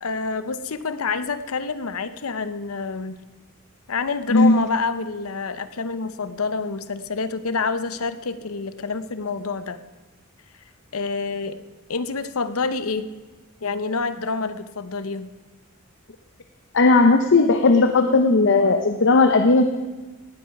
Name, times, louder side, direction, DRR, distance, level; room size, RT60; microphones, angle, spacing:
voice 1, 0.0-3.2 3.9-9.8 10.9-11.6 11.9-13.1 13.6-15.3, left 4 dB, 90° left, 12 dB, 0.8 m, -27 dB
voice 2, 4.3-4.6 16.7-19.8, left 3 dB, 60° left, 7 dB, 0.8 m, -16 dB
18.0 x 9.5 x 5.9 m, 1.3 s
head